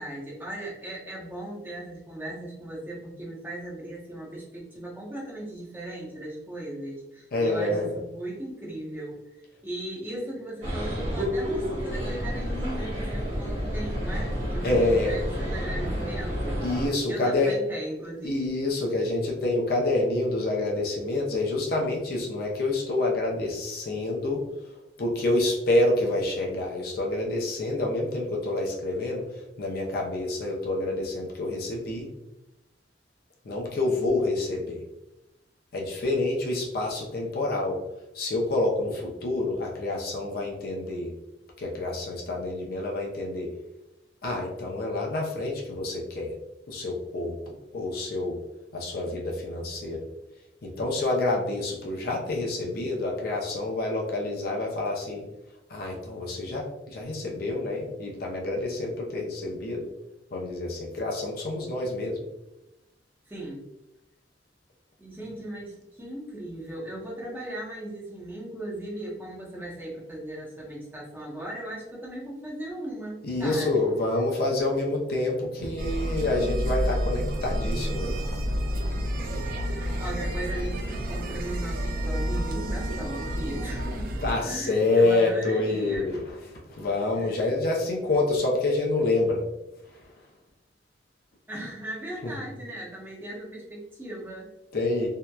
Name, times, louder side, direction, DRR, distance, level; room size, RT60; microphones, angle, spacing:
voice 1, 0.0-16.6 17.1-18.5 63.3-63.7 65.0-73.8 79.5-84.1 84.4-86.1 87.1-87.4 91.5-94.5, right 1 dB, 10° right, -4 dB, 0.6 m, -37 dB
voice 2, 7.3-7.9 14.6-15.2 16.6-17.6 18.2-24.4 25.0-32.1 33.4-34.8 35.7-37.8 38.1-41.1 41.6-43.5 44.2-46.4 46.7-48.4 48.7-50.0 50.6-55.2 55.7-59.9 60.3-62.2 73.2-78.2 84.2-89.5 89.9-90.0 92.2-92.3 94.7-95.1, left 2 dB, 55° left, -1 dB, 0.5 m, -27 dB
sound 1, 10.6-16.9, equal, 85° right, 1.1 m, -30 dB
sound 2, 75.8-84.3, equal, 50° right, 0.3 m, -29 dB
2.7 x 2.1 x 2.2 m, 0.93 s
head